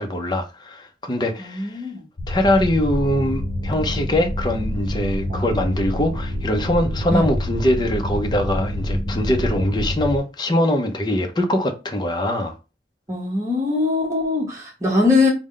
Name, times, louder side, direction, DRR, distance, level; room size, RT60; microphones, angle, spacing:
voice 1, 0.0-1.8 2.3-12.5, left 1 dB, 25° left, 0.6 m, -22 dB
voice 2, 1.4-2.0 5.3-5.4 7.1-7.3 13.1-15.3, left 3 dB, 20° right, 1.0 m, -21 dB
sound 1, 2.2-10.2, left 1 dB, 60° left, 0.8 m, -27 dB
sound 2, 3.0-9.7, right 1 dB, ahead, 1.3 m, -36 dB
4.8 x 2.1 x 3.7 m
head